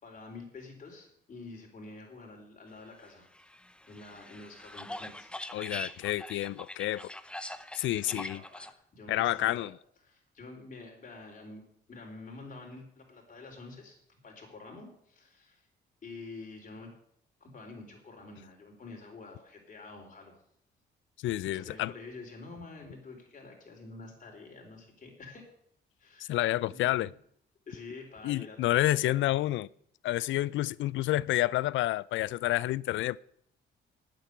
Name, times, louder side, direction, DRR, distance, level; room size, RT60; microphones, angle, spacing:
voice 1, 0.0-3.3 3.8-5.3 8.0-9.7 10.0-11.6 11.9-14.0 14.2-15.7 16.0-16.9 17.4-20.4 21.5-25.5 26.0-26.4 26.7-27.2 27.7-29.5, left 3 dB, 40° left, 4.1 m, -48 dB
sound 1, 3.3-8.7, left 1 dB, 5° left, 0.8 m, -43 dB
voice 2, 5.5-7.1 7.8-8.4 9.1-9.7 21.2-21.9 26.3-27.1 28.2-29.7 30.0-33.2, left 15 dB, 75° left, 0.4 m, -29 dB
8.9 x 7.7 x 8.1 m
cardioid pair, 90°, 20 cm